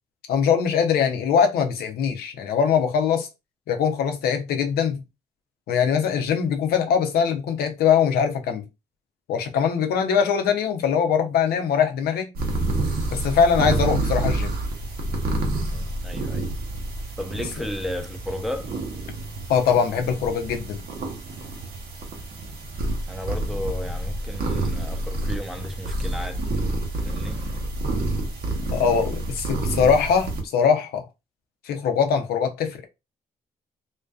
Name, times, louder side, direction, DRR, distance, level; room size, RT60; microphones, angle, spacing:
voice 1, 0.3-3.3 3.7-5.0 5.7-8.6 9.3-12.3 13.1-14.5 19.5-20.8 28.7-31.0 31.7-32.8, left 7 dB, 80° left, 0.5 m, -22 dB
sound 1, 12.3-30.4, right 2 dB, 70° right, 0.7 m, -28 dB
voice 2, 15.7-16.5 17.2-18.7 23.1-26.4 27.0-27.4, left 1 dB, ahead, 0.6 m, -33 dB
2.5 x 2.2 x 2.3 m
supercardioid pair, 50°, 16 cm